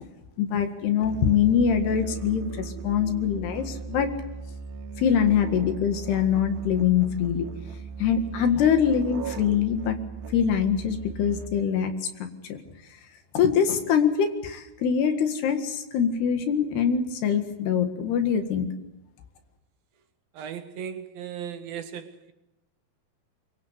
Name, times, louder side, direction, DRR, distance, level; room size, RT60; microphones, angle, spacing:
voice 1, 0.4-4.1 5.0-7.5 8.0-10.0 10.3-11.9 12.5-12.6 13.4-18.7, left 8 dB, 75° left, 3.9 m, -23 dB
Musical instrument, 1.0-11.8, right 5 dB, 85° right, 3.3 m, -38 dB
voice 2, 20.3-22.3, right 8 dB, 70° right, 2.7 m, -37 dB
23.5 x 23.5 x 8.1 m
omnidirectional pair, 4.8 m